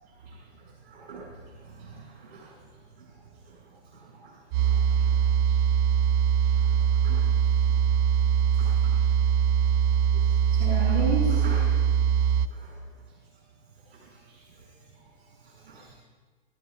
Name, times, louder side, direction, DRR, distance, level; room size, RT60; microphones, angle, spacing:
voice 1, 0.3-2.5 3.0-3.6 3.9-5.6 6.5-7.7 8.5-8.9 10.1-12.8 13.9-14.6 15.4-15.9, right 3 dB, 75° right, -6 dB, 6.0 m, -38 dB
sound 1, 4.5-12.5, right 8 dB, 35° right, 0.7 m, -22 dB
29.5 x 13.0 x 2.6 m, 1.4 s
hypercardioid pair, 115°, 32 cm